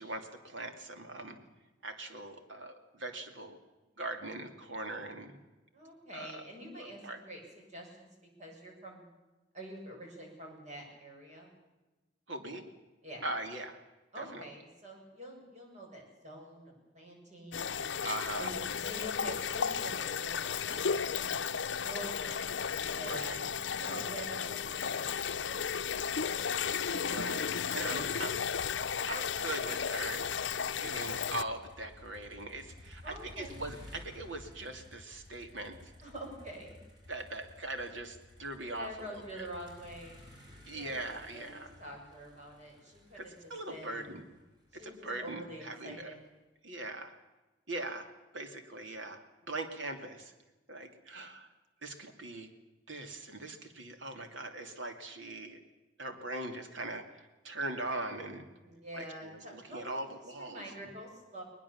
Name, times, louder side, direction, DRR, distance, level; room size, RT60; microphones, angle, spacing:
voice 1, 0.0-1.4 1.8-3.6 4.0-5.4 6.1-6.4 6.8-7.2 12.3-12.7 13.2-13.8 14.2-14.5 18.0-18.5 23.0-23.4 27.1-28.4 29.1-30.2 30.8-35.9 37.1-39.5 40.7-41.7 43.1-44.2 44.7-46.1 46.6-47.1 47.7-50.3 50.7-51.5 51.8-52.5 52.9-55.6 56.0-58.4 58.9-60.6, right 2 dB, 80° right, 6 dB, 2.8 m, -41 dB
voice 2, 5.7-8.1 8.4-9.1 9.5-11.6 13.0-13.2 14.1-18.0 18.4-21.4 21.8-23.4 23.8-27.2 27.9-28.1 33.0-33.5 36.0-36.8 38.6-40.2 40.7-44.2 44.7-46.2 58.6-61.4, right 1 dB, 40° right, 0 dB, 7.6 m, -47 dB
sound 1, 17.5-31.4, left 7 dB, 65° left, 0.7 m, -34 dB
Motor vehicle (road), 29.9-46.0, left 1 dB, 25° right, 6.1 m, -55 dB
21.0 x 20.5 x 7.3 m, 1.1 s
head